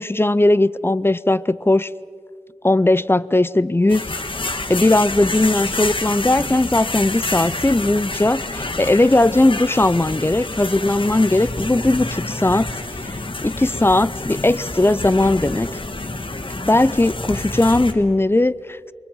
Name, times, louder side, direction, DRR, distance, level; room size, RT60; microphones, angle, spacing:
voice 1, 0.0-1.9 2.6-4.1 4.5-12.7 13.4-15.7 16.6-18.8, left 2 dB, 20° left, 18 dB, 0.5 m, -18 dB
sound 1, 3.9-17.9, left 2 dB, 45° left, 1.7 m, -28 dB
28.5 x 23.0 x 5.5 m, 2.2 s
wide cardioid pair, 65°, 12 cm